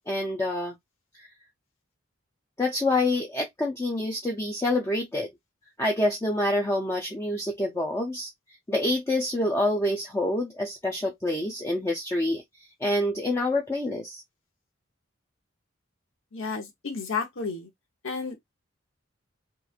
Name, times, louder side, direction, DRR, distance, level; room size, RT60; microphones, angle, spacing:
voice 1, 0.1-0.7 1.1-1.3 2.6-5.3 5.8-8.3 8.7-12.4 12.8-14.2, left 1 dB, 15° left, 0.4 m, -27 dB
voice 2, 16.3-17.7 18.0-18.4, left 4 dB, 80° left, 0.9 m, -32 dB
2.9 x 2.4 x 2.4 m
head